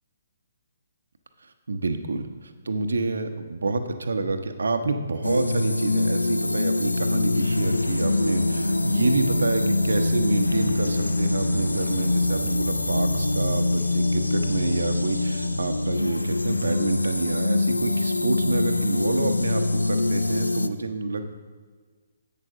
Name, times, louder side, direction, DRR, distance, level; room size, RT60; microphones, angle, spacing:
voice 1, 1.7-21.3, right 3 dB, 65° right, 8 dB, 0.8 m, -28 dB
sound 1, 5.2-20.7, left 2 dB, 85° left, 0.4 m, -24 dB
sound 2, 7.6-16.6, right 2 dB, 10° right, 0.6 m, -45 dB
sound 3, 12.1-14.8, left 2 dB, 65° left, 1.8 m, -44 dB
11.0 x 8.3 x 3.7 m, 1.5 s
figure-of-eight pair, 135°, 0 cm